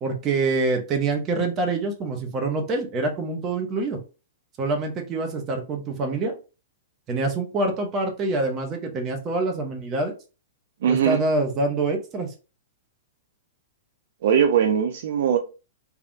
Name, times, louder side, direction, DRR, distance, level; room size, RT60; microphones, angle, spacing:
voice 1, 0.0-4.0 4.6-6.3 7.1-10.1 10.9-12.3, right 3 dB, 25° right, 0.8 m, -25 dB
voice 2, 10.8-11.2 14.2-15.4, right 8 dB, 55° right, 0.4 m, -20 dB
3.4 x 2.3 x 2.5 m
figure-of-eight pair, 105°, 0 cm